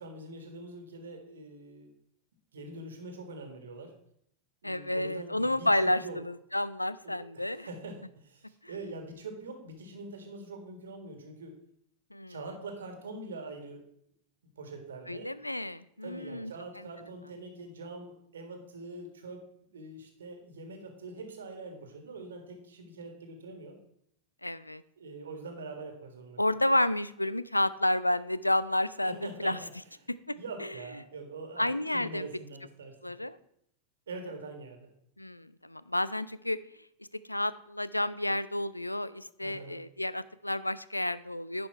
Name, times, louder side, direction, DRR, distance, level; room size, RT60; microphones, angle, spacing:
voice 1, 0.0-1.9 2.5-3.9 4.6-6.2 7.0-11.5 12.3-13.8 14.6-15.3 16.0-19.4 19.7-23.8 25.0-26.6 29.0-29.7 30.3-31.7 31.9-33.1 34.1-34.9 39.4-39.8, right 3 dB, 65° right, 4 dB, 1.7 m, -44 dB
voice 2, 4.6-7.7 12.1-12.4 15.1-16.5 24.4-24.8 26.4-29.6 30.3-30.4 30.6-30.7 31.6-32.3 33.0-33.4 35.2-36.6 37.3-41.7, left 1 dB, 85° left, 17 dB, 0.3 m, -30 dB
10.5 x 5.2 x 4.6 m, 0.71 s
figure-of-eight pair, 90°, 0 cm